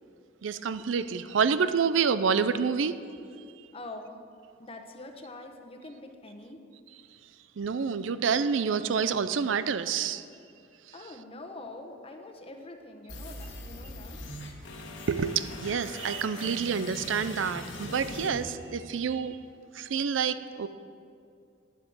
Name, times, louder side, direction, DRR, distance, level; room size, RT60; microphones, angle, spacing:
voice 1, 0.4-2.9 7.6-10.2 15.1-19.4 19.7-20.7, right 6 dB, 75° right, 13 dB, 0.5 m, -28 dB
voice 2, 3.7-4.2 4.6-6.6 10.9-14.2, left 2 dB, 30° left, 4 dB, 1.0 m, -44 dB
sound 1, 13.1-19.1, left 2 dB, 70° left, 1.4 m, -41 dB
9.8 x 8.5 x 7.9 m, 2.4 s
head